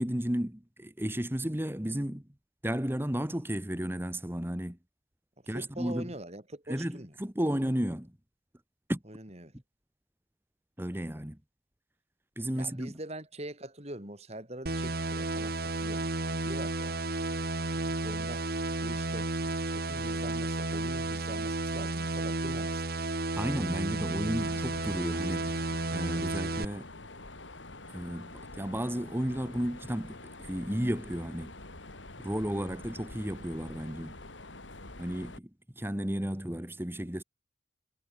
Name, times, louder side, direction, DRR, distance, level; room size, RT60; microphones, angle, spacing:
voice 1, 0.0-2.3 2.6-4.8 5.5-6.1 6.7-8.2 8.9-9.0 10.8-11.4 12.3-12.9 23.3-25.5 25.9-26.8 27.9-31.5 32.2-34.1 35.0-35.5 35.7-37.2, equal, 10° right, 1.5 m, -33 dB
voice 2, 5.4-7.1 9.1-9.6 12.6-17.4 17.7-18.5 18.8-19.3 19.7-23.1 27.0-27.1 33.7-34.0, right 1 dB, 35° right, 5.0 m, -44 dB
sound 1, 14.7-26.7, right 2 dB, 55° right, 2.0 m, -32 dB
Mechanisms, 24.4-35.4, left 2 dB, 85° left, 5.2 m, -47 dB
head